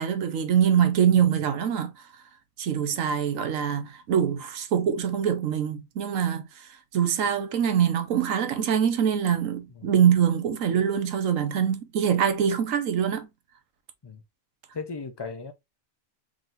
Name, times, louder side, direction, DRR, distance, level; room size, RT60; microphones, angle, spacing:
voice 1, 0.0-1.9 2.6-13.3, right 8 dB, 75° right, 1.2 m, -24 dB
voice 2, 14.7-15.5, left 4 dB, 35° left, 0.4 m, -37 dB
4.6 x 3.9 x 2.5 m
omnidirectional pair, 1.4 m